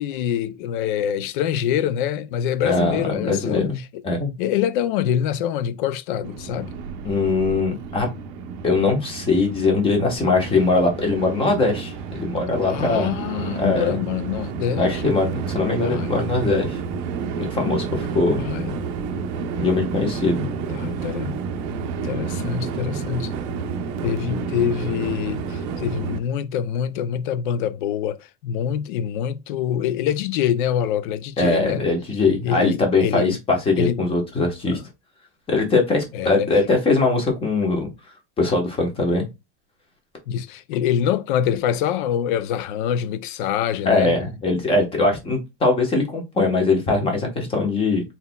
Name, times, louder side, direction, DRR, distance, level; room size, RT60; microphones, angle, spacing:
voice 1, 0.0-4.0 4.4-6.7 12.7-15.1 15.8-16.1 18.4-18.8 20.7-21.4 22.0-23.3 24.0-31.8 32.4-33.4 33.8-34.0 34.7-34.8 36.1-36.5 40.3-44.1, left 9 dB, 45° left, 0.4 m, -25 dB
voice 2, 2.6-3.8 4.0-4.3 7.0-8.1 8.6-13.1 13.6-14.0 14.8-16.8 17.4-18.4 19.6-20.5 31.4-34.8 35.5-37.9 38.4-39.3 43.8-48.0, left 3 dB, 15° left, 1.1 m, -21 dB
Train, 6.2-26.2, right 5 dB, 40° right, 0.7 m, -30 dB
4.0 x 4.0 x 2.2 m
supercardioid pair, 170°, 37 cm